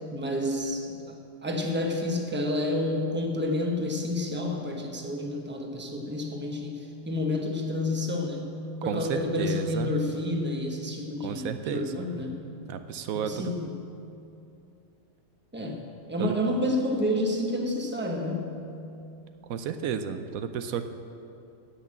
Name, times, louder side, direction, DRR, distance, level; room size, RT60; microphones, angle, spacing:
voice 1, 0.1-1.2 1.4-8.5 8.8-12.4 13.1-13.8 15.5-15.8 16.1-18.5, left 1 dB, 10° right, 1 dB, 1.0 m, -29 dB
voice 2, 8.9-9.9 11.2-12.0 12.7-13.5 16.2-16.3 19.5-20.9, right 7 dB, 90° right, 9 dB, 1.1 m, -32 dB
10.0 x 8.2 x 7.6 m, 2.7 s
omnidirectional pair, 1.4 m